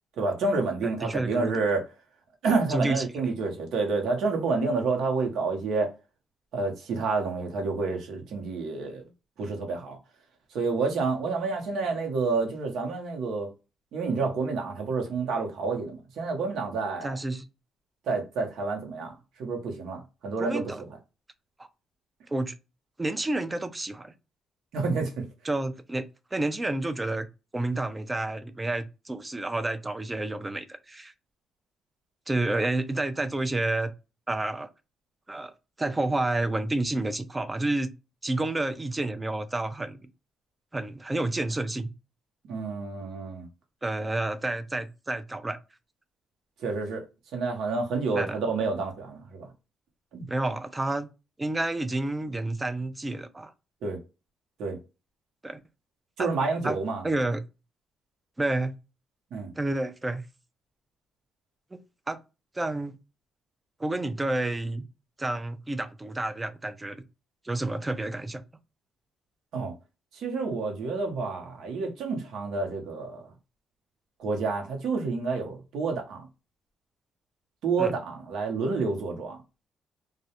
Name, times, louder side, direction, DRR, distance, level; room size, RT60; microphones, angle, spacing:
voice 1, 0.2-1.9 2.4-5.9 6.5-9.0 9.4-10.0 10.5-13.5 13.9-17.2 18.1-20.6 24.7-25.2 42.5-43.5 46.6-47.1 47.3-49.5 50.1-50.3 53.8-54.0 54.6-54.8 56.2-57.1 59.3-59.5 69.5-69.7 70.1-73.2 74.2-76.3 77.6-79.4, right 4 dB, 75° right, 0.8 m, -29 dB
voice 2, 1.0-1.5 2.7-3.0 17.0-17.5 20.4-20.8 21.6-21.7 22.3-22.5 23.0-24.1 25.4-26.1 26.3-27.3 27.5-31.1 32.3-33.9 34.3-34.7 35.3-35.5 35.8-37.9 38.2-40.0 40.7-41.9 43.8-45.6 48.1-48.4 50.3-51.1 51.4-53.5 55.4-55.6 56.2-56.3 56.6-56.8 57.0-57.4 58.4-58.7 59.6-60.2 61.7-61.8 62.1-62.2 62.5-62.9 63.8-64.9 65.2-67.0 67.4-68.4 77.8-77.9, right 2 dB, 20° right, 0.4 m, -29 dB
2.3 x 2.1 x 2.8 m
cardioid pair, 90°, 0 cm